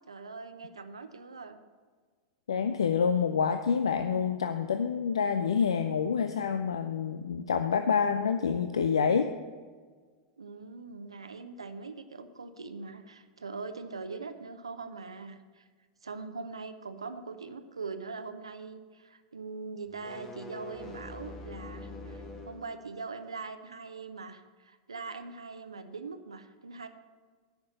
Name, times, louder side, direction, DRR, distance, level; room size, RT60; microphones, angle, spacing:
voice 1, 0.1-1.6 10.4-15.7 16.0-26.9, right 4 dB, 80° right, 9 dB, 0.7 m, -42 dB
voice 2, 2.5-9.3, left 6 dB, 70° left, 9 dB, 0.5 m, -27 dB
sound 1, 19.9-22.7, left 2 dB, 20° left, 1.7 m, -44 dB
9.5 x 5.8 x 7.9 m, 1.5 s
figure-of-eight pair, 95°, 3 cm